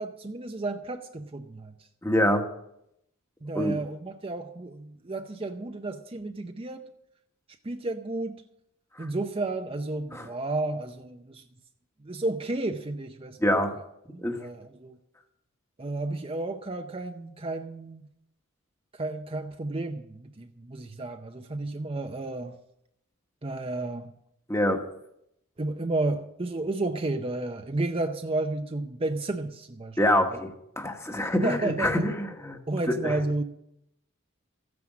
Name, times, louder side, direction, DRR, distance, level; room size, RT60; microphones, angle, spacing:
voice 1, 0.0-1.7 3.4-6.9 7.6-8.4 9.0-11.4 12.0-13.6 14.1-15.0 15.8-18.1 19.0-22.6 23.4-24.1 25.6-30.0 30.3-30.4 31.4-32.1 32.7-33.4, right 2 dB, 25° right, 5 dB, 0.6 m, -32 dB
voice 2, 2.0-2.4 3.5-3.7 10.1-10.3 13.4-13.7 14.2-14.4 24.5-24.8 30.0-30.5 30.8-32.6 32.9-33.2, left 1 dB, 15° left, 4 dB, 1.3 m, -25 dB
14.5 x 9.5 x 6.1 m, 0.79 s
head